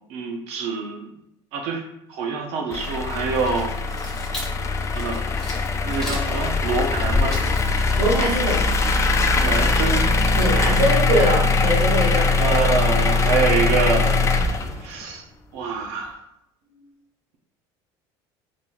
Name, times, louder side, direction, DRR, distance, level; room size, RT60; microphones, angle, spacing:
voice 1, 0.1-1.1 1.5-1.8 2.1-3.7 4.9-5.2 5.8-7.4 9.4-10.1 12.4-14.3 14.8-15.2 15.5-16.2, right 5 dB, 70° right, 2 dB, 0.7 m, -25 dB
sound 1, 2.7-15.0, left 3 dB, 25° left, 0.4 m, -21 dB
sound 2, 3.3-9.8, left 2 dB, 5° left, 1.4 m, -28 dB
voice 2, 8.0-8.7 10.4-12.3, right 1 dB, 90° right, -8 dB, 1.3 m, -22 dB
3.9 x 2.9 x 2.5 m, 0.77 s
supercardioid pair, 115°, 11 cm